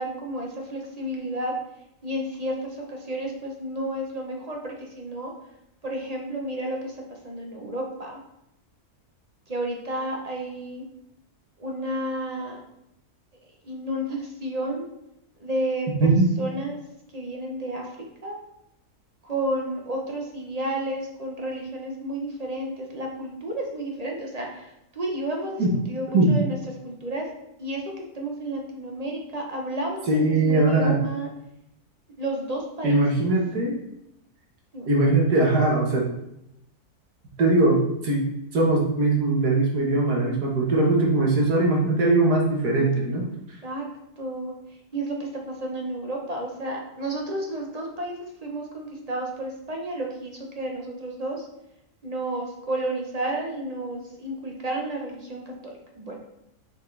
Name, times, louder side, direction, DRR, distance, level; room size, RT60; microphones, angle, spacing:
voice 1, 0.0-1.6 2.0-5.3 5.8-6.9 7.2-8.2 9.5-10.8 11.6-12.6 13.6-14.9 15.4-16.8 17.1-17.9 18.2-18.4 19.2-26.6 26.8-27.3 27.6-27.8 28.1-31.3 32.2-33.3 34.7-34.9 43.6-43.9 44.2-44.5 44.9-51.5 52.0-55.4 55.9-56.2, right 1 dB, 30° right, -1 dB, 0.8 m, -31 dB
voice 2, 30.1-31.0 32.8-33.8 34.9-36.1 37.4-38.2 38.5-43.3, right 2 dB, 90° right, -1 dB, 1.8 m, -20 dB
5.9 x 4.8 x 3.3 m, 0.83 s
omnidirectional pair, 1.6 m